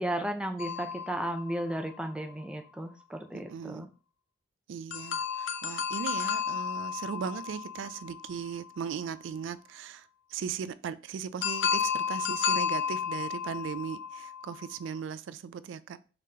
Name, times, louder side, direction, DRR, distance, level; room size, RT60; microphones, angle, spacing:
voice 1, 0.0-3.9, right 1 dB, 5° right, 0.4 m, -34 dB
sound 1, 0.6-2.3 4.9-8.8 11.4-14.9, left 7 dB, 70° left, 0.5 m, -33 dB
voice 2, 3.3-3.9 4.7-16.0, right 7 dB, 85° right, 0.3 m, -38 dB
4.8 x 3.6 x 2.8 m
head